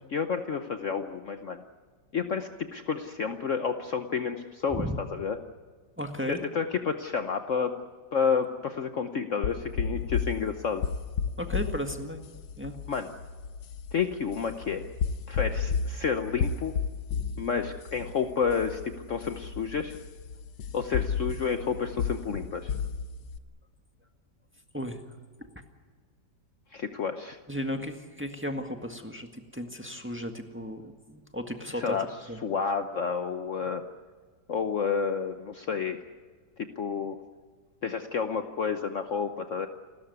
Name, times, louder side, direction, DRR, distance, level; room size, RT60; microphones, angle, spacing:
voice 1, 0.1-1.6 2.1-5.4 6.3-7.7 8.1-10.9 12.9-13.1 13.9-14.9 15.3-16.7 17.4-20.0 20.7-22.7 26.7-27.4 31.7-32.1 32.4-33.8 34.5-36.0 36.6-37.2 37.8-39.7, left 6 dB, 50° left, 7 dB, 1.1 m, -30 dB
voice 2, 6.0-6.4 11.4-12.2 12.6-12.7 24.7-25.0 27.5-32.0 32.3-32.4, equal, 5° right, 5 dB, 1.6 m, -35 dB
sound 1, 9.4-23.4, left 6 dB, 80° left, 1.6 m, -33 dB
29.0 x 13.5 x 9.5 m, 1.5 s
omnidirectional pair, 1.9 m